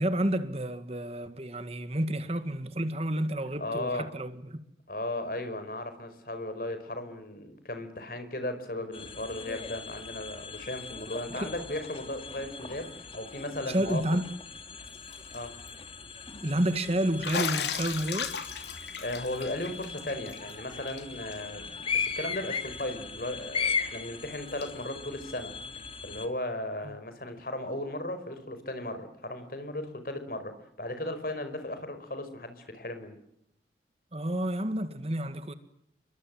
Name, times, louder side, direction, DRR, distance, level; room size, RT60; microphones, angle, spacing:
voice 1, 0.0-4.6 11.3-11.5 13.7-14.3 16.4-18.4 26.8-26.9 34.1-35.5, right 1 dB, 35° right, 1.9 m, -30 dB
voice 2, 3.6-4.2 4.9-14.0 15.3-15.6 19.0-25.5 26.0-33.2, left 1 dB, 55° left, 5.2 m, -36 dB
sound 1, 8.9-26.3, left 5 dB, 30° left, 2.4 m, -38 dB
Bathtub (filling or washing), 14.9-15.4 15.7-15.8 17.2-20.5 20.9-21.0 21.3-21.4 22.8-22.9 24.6-24.7, left 7 dB, 75° left, 2.9 m, -35 dB
30.0 x 23.5 x 7.8 m
head